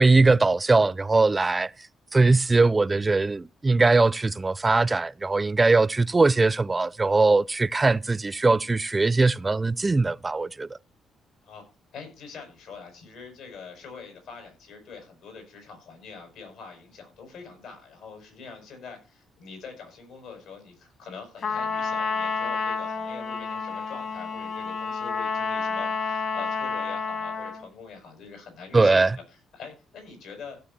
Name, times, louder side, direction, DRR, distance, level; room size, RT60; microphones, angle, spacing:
voice 1, 0.0-1.7 2.1-10.7 28.7-29.1, right 3 dB, 25° right, 0.4 m, -21 dB
voice 2, 11.9-29.0 29.3-30.6, left 5 dB, 85° left, 6.5 m, -44 dB
Trumpet, 21.4-27.6, left 4 dB, 55° left, 1.9 m, -29 dB
16.0 x 6.7 x 4.3 m
cardioid pair, 90°, 0 cm